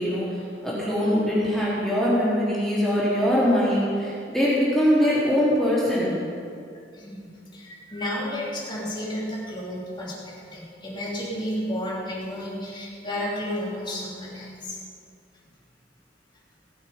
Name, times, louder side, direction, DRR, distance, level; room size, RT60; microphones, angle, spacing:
voice 1, 0.0-6.1, equal, ahead, -9 dB, 3.6 m, -22 dB
voice 2, 6.9-14.8, equal, 25° left, -6 dB, 3.1 m, -32 dB
18.5 x 7.2 x 5.4 m, 2.4 s
head